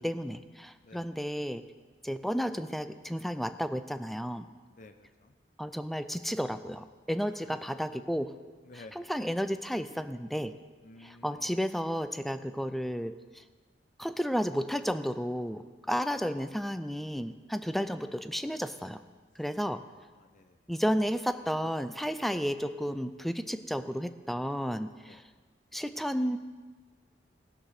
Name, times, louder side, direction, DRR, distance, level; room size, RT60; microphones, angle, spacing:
voice 1, 0.0-1.6 2.0-4.5 5.6-8.3 9.0-10.5 11.0-13.1 14.0-19.0 19.4-19.8 20.7-25.2 25.7-26.4, equal, ahead, 10 dB, 0.4 m, -32 dB
voice 2, 4.7-5.3 7.1-8.0 8.6-9.0 10.8-11.6 19.9-20.6 25.1-25.2, left 3 dB, 45° left, 8 dB, 0.7 m, -53 dB
15.5 x 6.0 x 6.5 m, 1.4 s
head